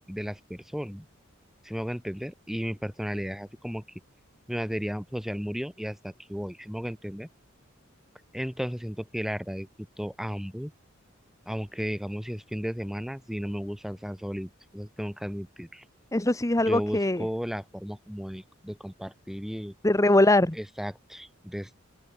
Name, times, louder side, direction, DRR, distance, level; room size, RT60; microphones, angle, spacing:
voice 1, 0.1-1.1 1.6-3.8 4.5-7.3 8.3-10.7 11.5-15.8 16.7-19.7 20.6-21.8, equal, ahead, 3.7 m, -34 dB
voice 2, 16.1-17.3 19.8-20.6, left 1 dB, 15° left, 1.2 m, -22 dB
open air
head